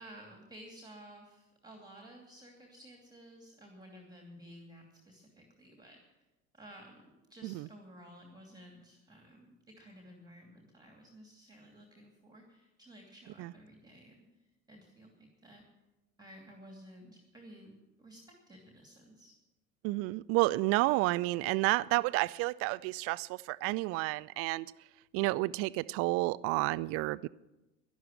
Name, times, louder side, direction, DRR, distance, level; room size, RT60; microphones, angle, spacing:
voice 1, 0.0-6.2 6.5-14.3 14.7-15.7 16.2-19.3, equal, 10° right, 2 dB, 2.7 m, -54 dB
voice 2, 19.8-24.7 25.1-27.3, right 20 dB, 35° right, 20 dB, 0.4 m, -30 dB
12.5 x 12.0 x 7.5 m, 1.0 s
figure-of-eight pair, 65°, 41 cm